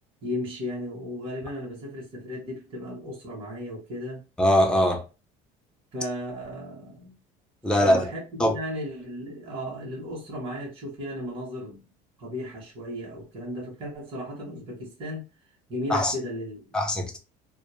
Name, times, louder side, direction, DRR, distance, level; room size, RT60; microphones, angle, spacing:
voice 1, 0.2-4.2 5.9-7.1 7.8-11.8 12.2-15.3 15.7-16.7, left 1 dB, 35° right, 0.9 m, -35 dB
voice 2, 4.4-5.0 7.6-8.1 8.4-8.5 15.9-16.1 16.7-17.2, left 1 dB, 5° left, 0.4 m, -21 dB
2.2 x 2.1 x 2.9 m
cardioid pair, 160°, 16 cm